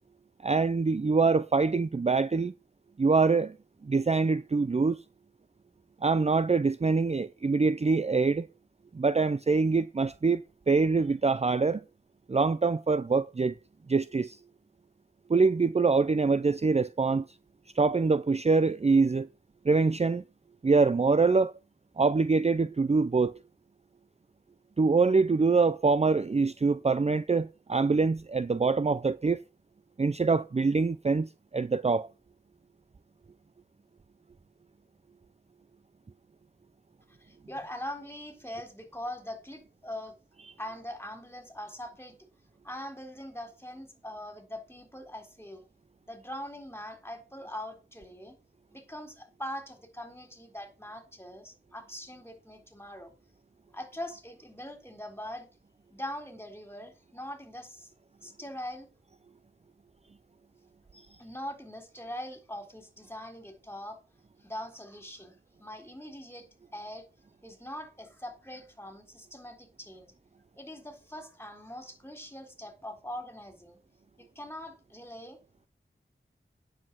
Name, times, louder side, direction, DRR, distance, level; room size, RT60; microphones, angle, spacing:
voice 1, 0.4-2.5 3.0-3.5 3.8-5.0 6.0-8.5 8.9-11.8 12.3-13.5 13.9-14.4 15.3-17.3 17.8-19.3 19.6-20.2 20.6-21.5 22.0-23.3 24.8-29.4 30.0-32.1, right 4 dB, 35° right, 0.5 m, -24 dB
voice 2, 37.1-40.1 40.6-42.2 42.6-45.6 46.1-48.4 48.7-53.1 53.7-55.5 55.9-57.9 58.2-58.9 61.2-64.0 64.4-66.5 66.7-67.1 67.4-70.1 70.5-73.8 74.2-75.4, left 1 dB, 10° left, 3.8 m, -42 dB
9.8 x 7.5 x 6.0 m
wide cardioid pair, 55°, 20 cm